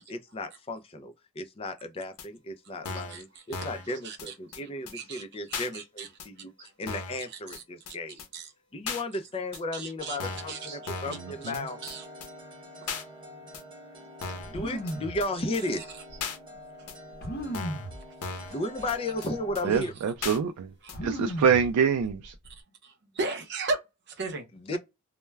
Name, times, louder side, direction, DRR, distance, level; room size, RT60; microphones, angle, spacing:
voice 1, 0.0-8.2 8.7-11.8 14.5-16.0 18.5-19.9 24.5-24.8, left 2 dB, 25° left, 0.4 m, -34 dB
sound 1, 2.2-2.3 2.9-3.2 3.5-3.9 4.2-4.3 4.5-4.6 4.9-5.0 5.5-5.7 6.2-6.3 6.9-7.2 7.5-7.6 7.9-8.0 8.2-8.3 8.9-9.0 9.5-9.6 10.2-10.5 10.9-11.2 11.5-11.6 11.9-12.0 12.2-12.3 12.9-13.0 13.5-13.6 14.2-14.5 14.9-15.0 15.2-15.3 15.5-15.6 16.2-16.4 16.9-17.0 17.5-17.9 18.2-18.5 18.9-19.0 19.2-19.3 19.6-19.7 20.2-20.4 20.9-21.0, left 4 dB, 85° left, 0.6 m, -36 dB
voice 2, 2.9-3.2 3.9-4.3 4.6-6.1 6.4-6.5 7.3-7.6 8.3-8.5 9.7-10.8 11.8-12.1 16.8-16.9 20.8-21.0 22.5-24.5 24.7-24.8, right 3 dB, 50° right, 0.6 m, -37 dB
sound 2, 10.0-19.6, left 1 dB, 20° right, 1.0 m, -46 dB
voice 3, 11.1-11.6 19.6-20.7 21.0-22.3, right 7 dB, 90° right, 0.3 m, -26 dB
sound 3, 14.4-15.2 16.1-16.2 17.2-18.0 18.8-18.9 19.3-19.8 20.9-21.7 22.0-22.5, right 1 dB, 45° left, 0.8 m, -35 dB
2.2 x 2.1 x 3.1 m
head